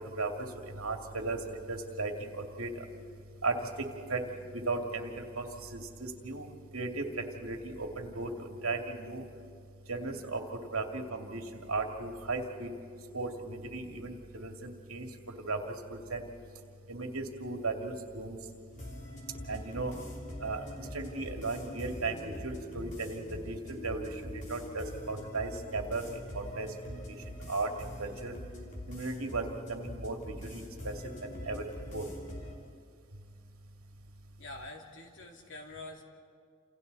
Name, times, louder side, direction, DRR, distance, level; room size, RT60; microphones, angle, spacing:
voice 1, 0.8-1.4 1.7-2.3 2.6-2.7 3.4-3.5 4.1-4.2 4.7-5.5 5.7-6.5 6.7-7.0 7.4-8.3 8.6-9.2 9.9-10.4 10.7-11.4 11.7-12.7 13.1-15.1 15.4-15.6 15.9-16.2 16.9-18.4 19.5-19.9 20.4-20.6 20.9-24.1 24.5-26.0 26.3-27.0 27.5-28.3 28.9-29.4 29.7-30.9 31.2-31.7 31.9-32.0, right 3 dB, 75° right, 3 dB, 2.4 m, -36 dB
sound 1, 18.7-32.5, left 1 dB, 35° left, 3.1 m, -44 dB
voice 2, 34.4-36.0, left 2 dB, 60° left, 1 dB, 2.8 m, -46 dB
29.5 x 28.0 x 4.2 m, 2.2 s
head